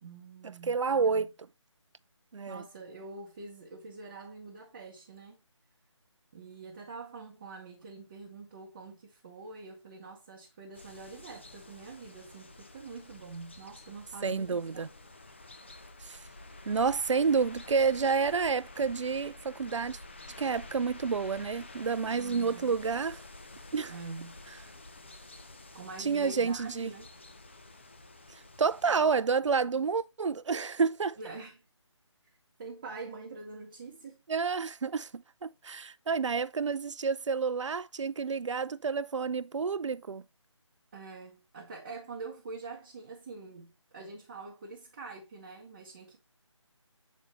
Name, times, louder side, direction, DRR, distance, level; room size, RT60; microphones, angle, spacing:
voice 1, 0.0-1.3 2.5-5.4 6.3-14.9 22.2-22.8 23.9-24.4 25.7-27.1 31.2-31.6 32.6-34.2 40.9-46.2, right 4 dB, 20° right, 0.8 m, -45 dB
voice 2, 0.7-1.3 2.3-2.6 14.2-14.9 16.0-16.2 16.7-20.0 20.4-23.2 23.7-23.9 26.0-26.9 28.3-31.2 34.3-40.2, right 5 dB, 70° right, 0.4 m, -29 dB
sound 1, 10.7-29.2, left 2 dB, 25° left, 0.4 m, -50 dB
8.0 x 4.2 x 3.1 m
figure-of-eight pair, 160°, 16 cm